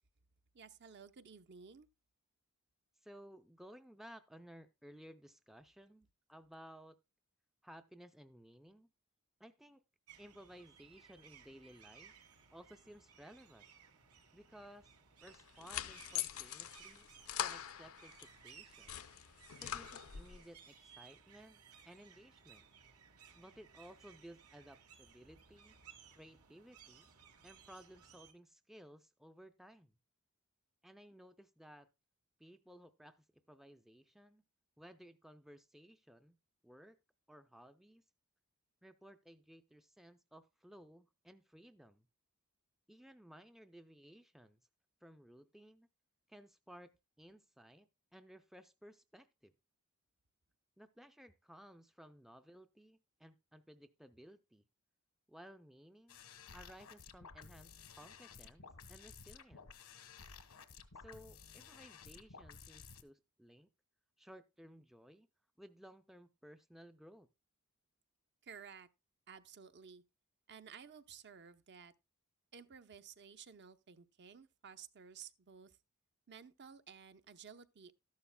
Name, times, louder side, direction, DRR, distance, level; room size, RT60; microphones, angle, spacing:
voice 1, 0.5-1.9 68.4-68.9 69.3-70.0 70.5-71.9 72.5-75.8 76.3-77.9, right 6 dB, 50° right, 0.7 m, -55 dB
voice 2, 3.0-7.0 7.6-8.9 9.4-9.8 10.2-12.2 12.5-13.7 14.3-14.9 15.2-17.1 17.4-19.0 19.6-22.7 23.3-25.8 26.1-27.1 27.4-29.9 30.8-31.9 32.4-34.4 34.8-36.4 36.6-37.0 37.3-38.1 38.8-42.1 42.9-44.6 45.0-45.9 46.3-49.5 50.8-54.6 55.3-56.2 56.5-59.7 61.0-63.7 64.2-65.3 65.6-67.3, equal, ahead, 0.4 m, -58 dB
sound 1, 10.1-28.3, right 7 dB, 85° right, 1.8 m, -61 dB
sound 2, 15.3-18.3 18.7-20.4, left 10 dB, 70° left, 0.6 m, -43 dB
sound 3, 56.1-63.0, left 5 dB, 85° left, 1.3 m, -55 dB
13.0 x 11.5 x 2.2 m
head